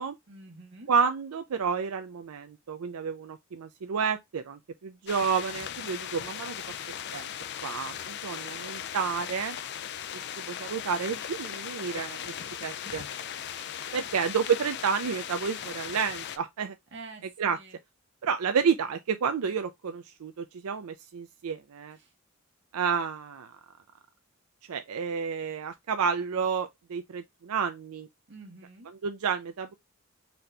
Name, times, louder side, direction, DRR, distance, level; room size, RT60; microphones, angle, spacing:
voice 1, 0.3-0.9 12.8-13.1 13.5-13.8 16.9-17.2 17.5-17.7 28.3-28.9, right 3 dB, 55° right, 1.4 m, -47 dB
voice 2, 0.9-6.6 7.1-7.3 7.6-9.6 10.1-12.3 12.6-13.0 13.9-16.8 17.2-17.6 18.2-22.0 22.7-23.6 24.7-28.1 28.8-29.7, right 6 dB, 90° right, 0.4 m, -30 dB
sound 1, 5.1-16.4, left 9 dB, 50° left, 0.4 m, -38 dB
4.1 x 2.8 x 3.2 m
head